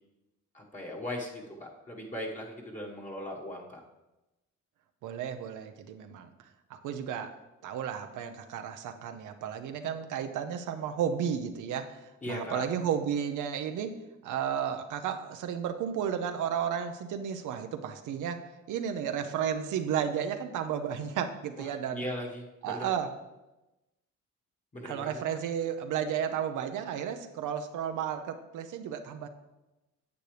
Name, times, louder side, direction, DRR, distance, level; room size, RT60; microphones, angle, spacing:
voice 1, 0.5-3.8 12.2-12.7 21.6-22.9 24.7-25.2, left 1 dB, 25° left, -3 dB, 1.5 m, -39 dB
voice 2, 5.0-6.3 6.8-7.4 7.6-22.0 22.6-23.1 24.8-29.3, right 8 dB, 80° right, 6 dB, 0.8 m, -33 dB
9.4 x 7.8 x 3.3 m, 1.0 s
cardioid pair, 90°, 30 cm